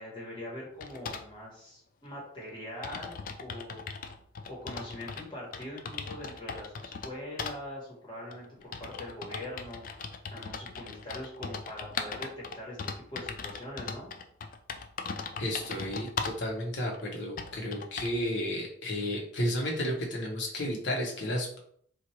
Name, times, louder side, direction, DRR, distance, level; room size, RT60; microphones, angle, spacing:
voice 1, 0.0-3.8 4.5-10.0 10.3-14.1, left 1 dB, 25° left, -5 dB, 1.2 m, -42 dB
sound 1, 0.8-1.3 2.2-2.3 2.5-2.6 2.8-5.2 5.5-7.1 7.4-7.6 8.3-16.4 16.9-17.0 17.4-18.2, left 5 dB, 45° left, 0.3 m, -39 dB
voice 2, 15.4-21.6, left 1 dB, 70° left, 0 dB, 0.9 m, -32 dB
3.0 x 2.4 x 4.2 m, 0.63 s
head